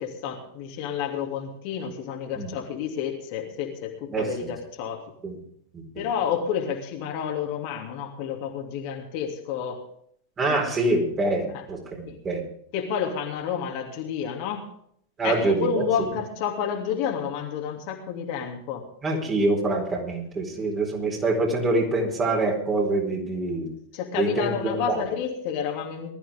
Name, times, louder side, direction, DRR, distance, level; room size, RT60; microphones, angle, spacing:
voice 1, 0.0-5.0 6.0-9.8 10.4-10.8 12.1-12.2 12.7-14.7 15.2-18.9 23.9-26.1, left 7 dB, 45° left, 1 dB, 2.9 m, -30 dB
voice 2, 4.1-4.5 5.2-5.4 10.4-12.4 15.2-16.1 19.0-23.7 24.1-25.0, right 2 dB, 20° right, 1 dB, 4.5 m, -25 dB
20.5 x 13.5 x 3.6 m, 0.67 s
figure-of-eight pair, 90°, 0 cm